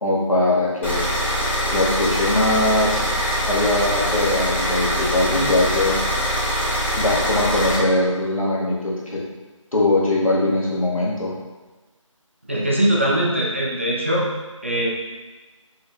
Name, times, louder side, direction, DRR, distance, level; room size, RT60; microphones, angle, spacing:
voice 1, 0.0-1.0 1.7-3.1 3.5-6.0 6.9-9.2 9.7-11.3, left 2 dB, 85° left, -5 dB, 1.5 m, -21 dB
sound 1, 0.8-7.8, equal, 20° left, 1.5 m, -23 dB
voice 2, 12.5-14.3 14.6-14.9, right 1 dB, 25° right, -5 dB, 0.5 m, -21 dB
4.9 x 3.9 x 2.3 m, 1.2 s
figure-of-eight pair, 165°, 17 cm